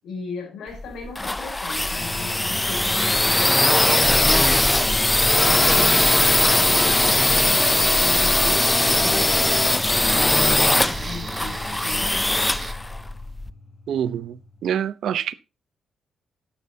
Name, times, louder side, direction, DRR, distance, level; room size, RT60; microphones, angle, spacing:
voice 1, 0.0-4.6 5.3-9.3 9.9-12.2, left 4 dB, 80° left, 5.5 m, -37 dB
sound 1, 0.7-13.5, left 2 dB, 10° left, 0.5 m, -20 dB
sound 2, 2.0-14.7, left 2 dB, 25° left, 4.1 m, -38 dB
sound 3, 3.8-12.7, right 4 dB, 25° right, 0.9 m, -38 dB
voice 2, 13.9-15.3, right 9 dB, 70° right, 0.8 m, -26 dB
12.5 x 10.0 x 2.8 m
wide cardioid pair, 160°, 0 cm